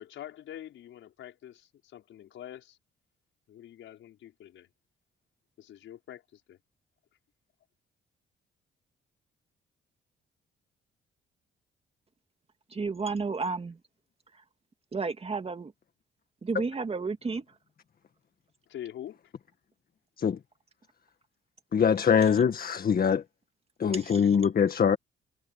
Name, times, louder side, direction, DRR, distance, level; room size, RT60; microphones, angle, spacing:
voice 1, 0.0-2.8 3.5-4.7 5.6-6.6 18.7-19.3, left 11 dB, 75° left, 5.7 m, -45 dB
voice 2, 12.7-13.8 14.9-15.7 16.4-17.4 23.9-24.4, right 4 dB, 30° right, 2.3 m, -32 dB
voice 3, 21.7-23.2 23.8-25.0, left 7 dB, 50° left, 1.8 m, -23 dB
cardioid pair, 90°, 20 cm